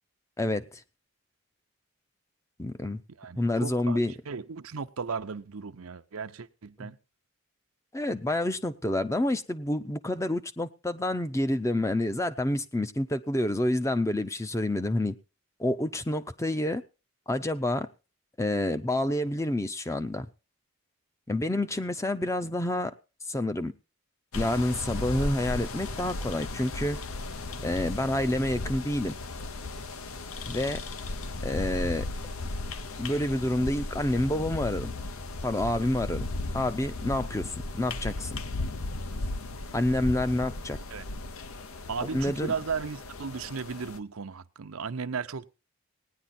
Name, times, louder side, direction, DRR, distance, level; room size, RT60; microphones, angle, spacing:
voice 1, 0.4-0.8 2.6-3.0 3.4-4.1 6.8-6.9 7.9-15.1 15.6-16.8 17.3-17.9 18.4-20.3 21.3-22.9 23.3-23.7 24.3-27.0 27.6-29.1 30.5-30.8 31.4-32.1 33.0-34.9 35.4-36.3 36.5-38.3 39.7-40.8 42.1-42.5, left 1 dB, 15° left, 0.6 m, -28 dB
voice 2, 3.2-7.0 40.9-41.1 41.9-45.5, right 5 dB, 85° right, 0.7 m, -35 dB
sound 1, 24.3-44.0, left 2 dB, 85° left, 0.9 m, -36 dB
17.5 x 10.0 x 4.2 m
head